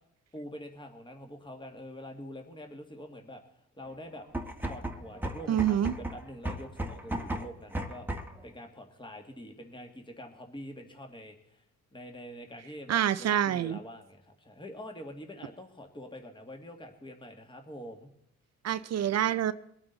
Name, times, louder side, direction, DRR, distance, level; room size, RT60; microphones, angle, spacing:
voice 1, 0.3-3.4 3.8-4.3 4.6-8.1 8.4-11.6 11.9-18.1, equal, 15° left, 4 dB, 2.1 m, -45 dB
sound 1, 4.2-8.4, right 1 dB, 5° right, 1.5 m, -36 dB
voice 2, 5.5-5.9 12.9-13.8 18.6-19.5, right 10 dB, 60° right, 13 dB, 0.7 m, -26 dB
22.5 x 8.9 x 4.1 m, 0.72 s
cardioid pair, 90°, 30 cm